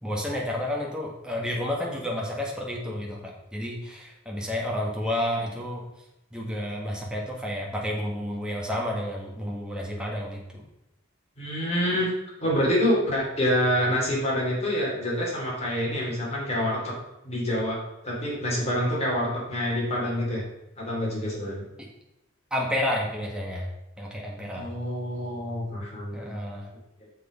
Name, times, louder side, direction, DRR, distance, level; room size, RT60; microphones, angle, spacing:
voice 1, 0.0-5.9 6.3-10.6 22.5-23.7 24.0-24.7 26.1-26.7, left 1 dB, 5° right, -2 dB, 1.7 m, -30 dB
voice 2, 11.4-12.1 12.4-16.9 17.2-17.8 18.0-20.4 20.8-21.6 24.5-26.3, equal, 35° left, -4 dB, 3.2 m, -26 dB
6.8 x 6.5 x 5.1 m, 0.90 s
head